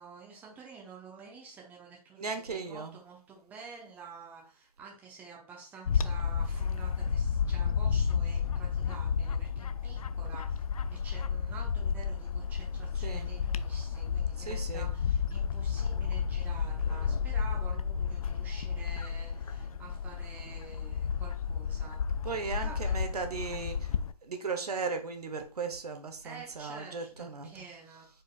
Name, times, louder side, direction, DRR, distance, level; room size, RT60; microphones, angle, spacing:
voice 1, 0.0-10.6 10.9-22.0 22.6-23.0 26.2-28.1, right 5 dB, 10° right, 0.9 m, -49 dB
voice 2, 2.2-2.9 13.0-13.4 14.4-14.9 22.2-23.9 24.2-27.5, right 4 dB, 75° right, 1.0 m, -36 dB
Bird / Wind, 5.9-24.1, left 6 dB, 65° left, 0.4 m, -32 dB
4.7 x 4.5 x 2.4 m
figure-of-eight pair, 145°, 20 cm